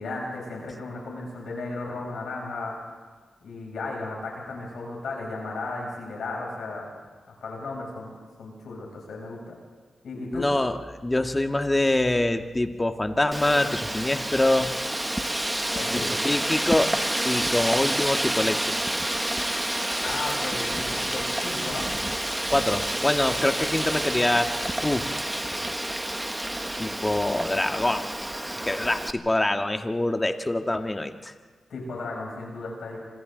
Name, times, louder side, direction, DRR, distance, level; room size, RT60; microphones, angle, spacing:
voice 1, 0.0-2.8 3.4-6.9 7.4-9.5 10.0-10.5 15.7-16.1 20.0-21.9 31.7-33.0, left 3 dB, 85° left, -2 dB, 7.5 m, -35 dB
voice 2, 10.3-14.7 15.9-16.9 17.3-18.7 22.5-24.5 24.8-25.2 26.8-28.0 28.6-31.3, left 1 dB, 20° left, 5 dB, 1.8 m, -25 dB
Wind, 13.3-29.1, right 1 dB, 15° right, 1.3 m, -29 dB
26.5 x 26.0 x 4.0 m, 1.5 s
cardioid pair, 55°, 0 cm